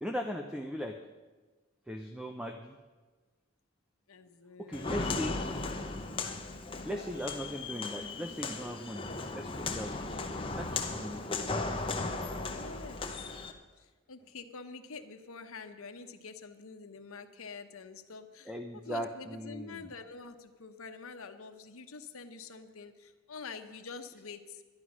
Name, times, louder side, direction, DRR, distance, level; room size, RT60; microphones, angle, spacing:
voice 1, 0.0-1.0 1.9-2.8 4.6-5.4 6.8-9.1 9.3-10.0 10.5-11.4 18.5-19.9, equal, 5° right, 5 dB, 0.5 m, -38 dB
voice 2, 4.1-5.4 6.2-6.4 11.1-11.3 12.4-13.4 13.8-24.6, left 4 dB, 80° left, 7 dB, 0.9 m, -47 dB
Walk footsteps, 4.7-13.5, left 3 dB, 25° left, 0.8 m, -36 dB
11.5 x 11.5 x 6.2 m, 1.3 s
head